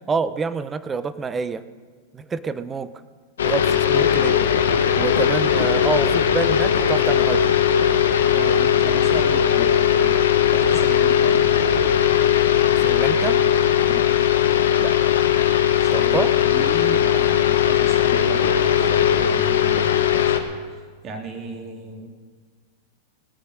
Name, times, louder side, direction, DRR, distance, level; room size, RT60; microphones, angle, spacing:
voice 1, 0.1-1.6 2.1-2.9 3.4-4.4 5.0-7.6 12.8-13.4 14.8-14.9 15.9-16.3, right 4 dB, 20° right, 14 dB, 0.8 m, -27 dB
sound 1, 3.4-20.4, left 9 dB, 80° left, 1.4 m, -18 dB
voice 2, 8.3-10.2 10.5-11.7 13.8-14.1 15.8-19.8 20.1-22.1, right 2 dB, 35° right, 2 dB, 3.1 m, -36 dB
19.0 x 8.7 x 6.6 m, 1.5 s
hypercardioid pair, 105°, 0 cm